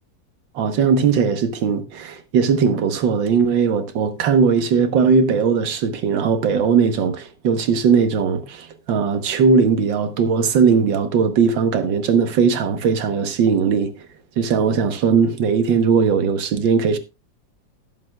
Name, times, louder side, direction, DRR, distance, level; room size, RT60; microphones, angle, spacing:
voice 1, 0.6-13.9 14.4-17.0, right 5 dB, 85° right, 1.8 m, -19 dB
18.0 x 7.7 x 2.3 m
omnidirectional pair, 2.0 m